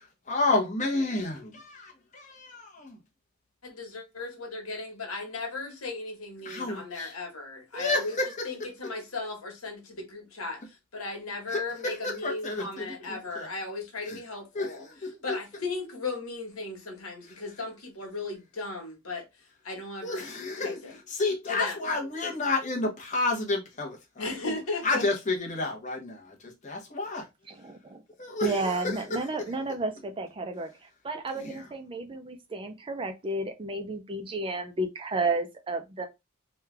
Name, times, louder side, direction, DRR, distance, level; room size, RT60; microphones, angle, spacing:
voice 1, 0.0-3.0 6.4-7.1 7.7-8.5 11.5-13.5 14.0-14.2 14.5-15.4 20.0-20.8 21.1-24.3 24.8-27.2 28.2-29.2 31.3-31.7, left 3 dB, 35° left, 0.9 m, -31 dB
voice 2, 3.6-8.1 8.4-14.8 15.2-19.3 19.6-20.3 20.6-21.0 21.5-21.9 24.2-25.0, left 3 dB, 75° left, 1.4 m, -36 dB
voice 3, 28.4-36.1, right 2 dB, 25° right, 0.4 m, -32 dB
3.2 x 2.3 x 3.3 m
head